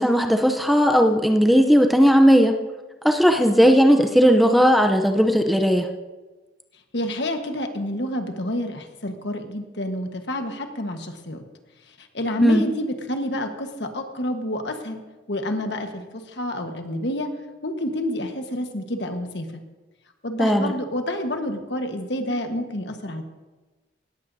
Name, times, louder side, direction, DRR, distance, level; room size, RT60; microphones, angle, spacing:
voice 1, 0.0-2.5 3.0-5.9 12.4-12.6 20.4-20.7, equal, ahead, 4 dB, 0.6 m, -17 dB
voice 2, 6.9-11.4 12.0-15.0 15.3-17.3 17.6-19.6 20.2-23.2, left 1 dB, 70° left, 5 dB, 1.4 m, -28 dB
18.0 x 14.0 x 2.7 m, 1.2 s
head